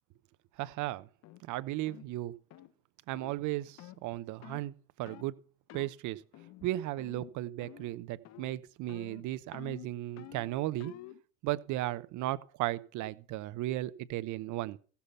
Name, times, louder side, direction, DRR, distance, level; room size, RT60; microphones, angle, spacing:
voice 1, 0.6-1.1 1.4-2.3 3.1-5.4 5.7-6.2 6.6-10.9 11.4-14.8, right 16 dB, 50° right, 0.9 m, -35 dB
sound 1, 1.2-1.4 1.9-2.1 2.5-2.7 3.1-3.3 3.8-4.0 4.4-4.7 5.1-5.3 5.7-5.9 6.3-6.7 7.0-7.3 7.6-8.0 8.2-8.6 8.9-11.2, left 15 dB, 45° left, 1.0 m, -50 dB
15.5 x 7.1 x 5.6 m
supercardioid pair, 105°, 39 cm